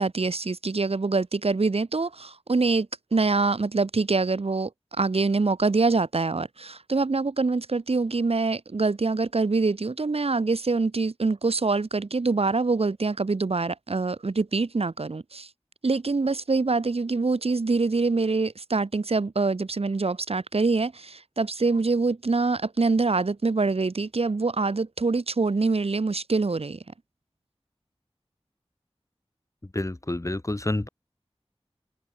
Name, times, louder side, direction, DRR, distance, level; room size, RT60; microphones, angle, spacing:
voice 1, 0.0-4.7 5.0-15.5 15.8-26.8, right 3 dB, 70° right, 1.0 m, -25 dB
voice 2, 29.7-30.9, left 1 dB, 30° left, 1.3 m, -28 dB
wide cardioid pair, 55°, 11 cm